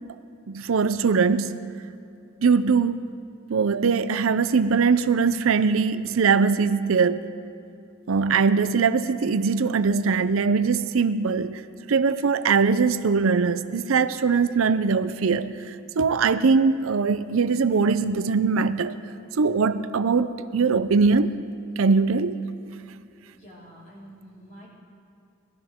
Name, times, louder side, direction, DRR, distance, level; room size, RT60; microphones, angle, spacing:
voice 1, 0.5-1.6 2.4-3.1 3.5-7.3 8.1-11.6 11.9-15.5 16.0-19.0 19.4-21.4 21.8-22.4, right 5 dB, 80° right, 12 dB, 0.5 m, -21 dB
voice 2, 23.3-24.7, equal, 40° left, -7 dB, 4.4 m, -47 dB
21.0 x 13.0 x 3.6 m, 2.5 s
head